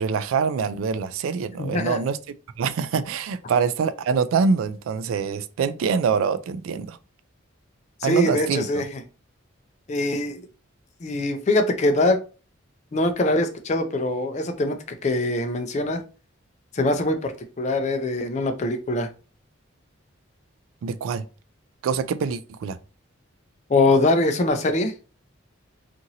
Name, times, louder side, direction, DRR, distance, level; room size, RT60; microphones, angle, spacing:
voice 1, 0.0-2.2 2.6-7.0 8.0-8.7 20.8-21.2 21.8-22.8, right 5 dB, 85° right, 0.3 m, -24 dB
voice 2, 1.6-2.0 8.0-9.0 9.9-10.4 11.0-12.2 12.9-16.0 16.7-19.1 23.7-24.9, left 2 dB, 35° left, 0.4 m, -23 dB
2.9 x 2.5 x 2.7 m
head